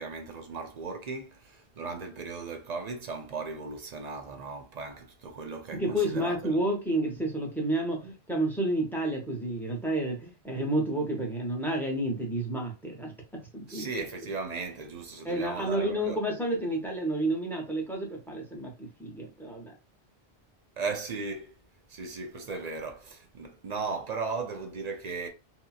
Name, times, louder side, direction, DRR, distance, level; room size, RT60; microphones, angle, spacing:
voice 1, 0.0-6.6 13.7-16.2 20.8-21.5 21.9-25.3, right 4 dB, 50° right, 0.5 m, -37 dB
voice 2, 5.7-14.0 15.2-19.7, right 1 dB, ahead, 0.7 m, -30 dB
2.8 x 2.7 x 2.3 m
omnidirectional pair, 1.1 m